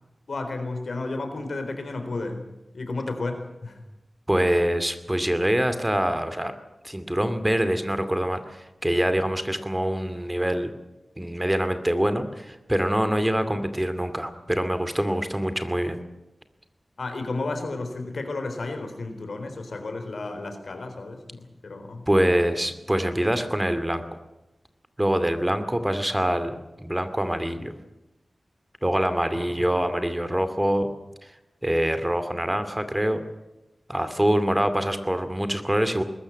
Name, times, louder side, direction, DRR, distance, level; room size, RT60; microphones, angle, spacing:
voice 1, 0.3-2.5 2.7-3.8 17.0-22.0 29.3-29.8, left 3 dB, 80° left, 6 dB, 3.9 m, -32 dB
voice 2, 4.3-6.5 6.8-10.7 11.2-16.0 22.1-24.0 25.0-27.7 28.8-30.9 31.6-33.2 33.9-36.0, equal, 15° right, 10 dB, 2.4 m, -25 dB
21.0 x 14.0 x 9.9 m, 0.99 s
cardioid pair, 50°, 0 cm